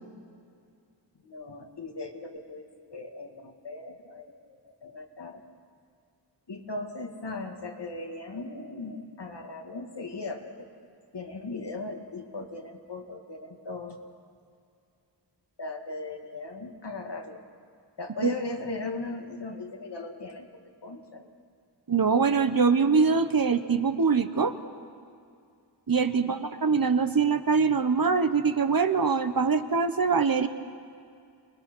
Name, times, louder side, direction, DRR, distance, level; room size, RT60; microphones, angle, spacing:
voice 1, 1.2-5.4 6.5-10.7 11.1-14.0 15.6-17.4 18.0-20.5 20.8-21.3 26.1-26.4, left 2 dB, 70° left, 3 dB, 2.2 m, -38 dB
voice 2, 21.9-24.5 25.9-30.5, right 5 dB, 55° right, 9 dB, 1.1 m, -23 dB
28.0 x 20.0 x 6.2 m, 2.4 s
wide cardioid pair, 75°, 43 cm